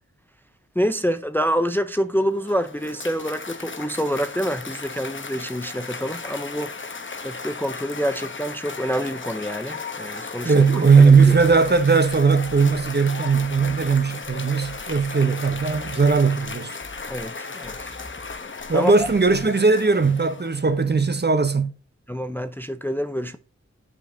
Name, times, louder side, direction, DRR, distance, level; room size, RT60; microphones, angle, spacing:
voice 1, 0.8-6.7 7.2-10.5 11.0-11.2 17.1-17.9 18.7-18.9 22.1-23.4, equal, 5° left, 0.5 m, -26 dB
Cheering / Applause, 2.2-20.8, left 4 dB, 45° left, 0.9 m, -36 dB
voice 2, 10.4-16.8 18.7-21.7, right 4 dB, 35° right, 0.7 m, -18 dB
sound 1, 11.1-19.7, left 2 dB, 30° left, 1.2 m, -45 dB
7.5 x 5.1 x 2.7 m
cardioid pair, 40°, 29 cm